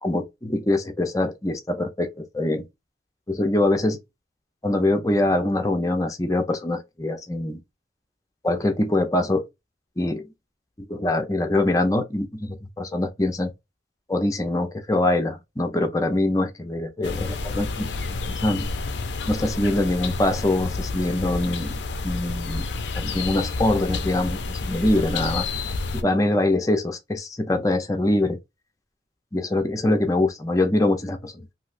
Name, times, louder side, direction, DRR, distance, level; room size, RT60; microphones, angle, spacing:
voice 1, 0.0-2.7 3.3-4.0 4.6-7.6 8.4-9.4 10.0-10.3 10.9-13.5 14.1-17.9 18.3-18.7 19.3-22.7 23.0-25.5 25.9-28.4 29.3-31.4, left 1 dB, 20° left, 0.5 m, -24 dB
sound 1, 17.0-26.0, left 3 dB, 70° left, 0.5 m, -29 dB
3.1 x 2.7 x 2.5 m
head